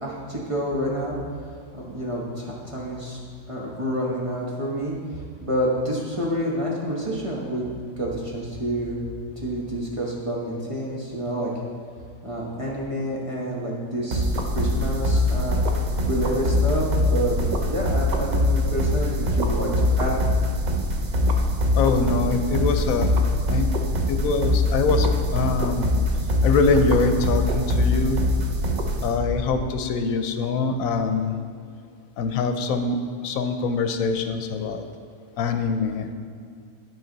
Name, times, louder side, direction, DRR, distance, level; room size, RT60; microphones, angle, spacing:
voice 1, 0.0-1.2 1.7-3.2 3.5-7.7 8.0-9.0 9.4-11.5 12.2-15.6 16.1-17.3 17.6-20.1, equal, 25° right, -4 dB, 1.0 m, -28 dB
sound 1, 14.1-29.6, left 1 dB, 50° right, 0.5 m, -23 dB
voice 2, 21.7-23.7 24.1-25.9 26.4-28.2 29.0-31.4 32.2-33.0 33.2-34.8 35.4-36.1, left 4 dB, 85° left, 7 dB, 1.0 m, -24 dB
11.5 x 4.6 x 3.9 m, 2.1 s
omnidirectional pair, 1.4 m